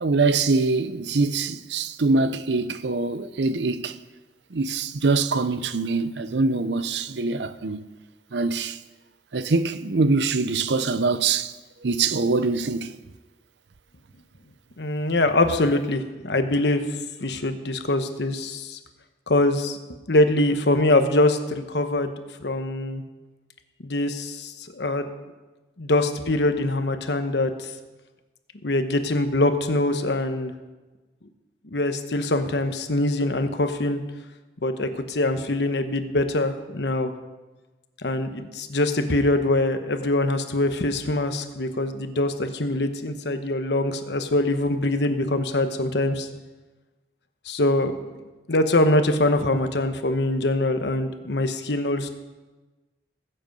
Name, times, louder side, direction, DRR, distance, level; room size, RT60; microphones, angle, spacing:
voice 1, 0.0-4.0 4.5-7.8 8.3-8.8 9.3-11.5 11.8-13.0, right 3 dB, 75° right, 0.7 m, -23 dB
voice 2, 14.8-16.9 17.2-18.8 19.3-19.8 20.1-22.1 22.4-23.0 23.8-25.1 25.8-27.7 28.6-30.5 31.7-34.0 34.6-37.1 38.0-46.3 47.5-47.9 48.5-52.1, left 2 dB, 70° left, 1.1 m, -23 dB
19.0 x 7.9 x 5.3 m
head